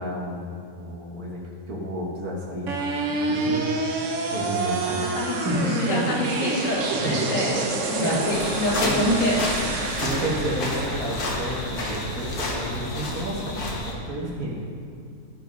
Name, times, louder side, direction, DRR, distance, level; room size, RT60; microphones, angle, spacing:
voice 1, 0.0-1.4 1.7-2.7 3.1-3.7 4.2-5.1 5.4-5.8 7.0-7.3 8.0-8.3 8.8-9.0 10.0-14.6, equal, 75° right, -3 dB, 2.0 m, -30 dB
sound 1, 2.7-12.7, right 3 dB, 60° right, 1.2 m, -28 dB
voice 2, 4.8-9.6, left 1 dB, 60° left, -3 dB, 2.0 m, -26 dB
sound 2, 8.3-13.9, left 1 dB, 85° left, 1.9 m, -30 dB
14.5 x 5.2 x 5.4 m, 2.3 s
omnidirectional pair, 1.6 m